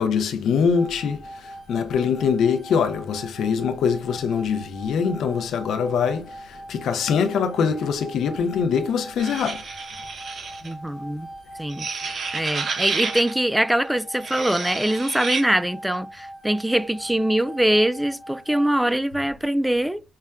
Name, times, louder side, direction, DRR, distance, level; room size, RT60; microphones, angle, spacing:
voice 1, 0.0-9.6, left 6 dB, 85° left, 0.5 m, -23 dB
sound 1, 0.7-18.8, right 1 dB, 30° right, 1.8 m, -42 dB
sound 2, 9.2-10.7 11.7-13.3 14.1-15.4, right 5 dB, 60° right, 0.7 m, -30 dB
voice 2, 10.6-11.3 11.6-12.0 12.3-20.0, right 1 dB, 5° right, 0.3 m, -23 dB
5.6 x 2.1 x 2.4 m
cardioid pair, 75°, 0 cm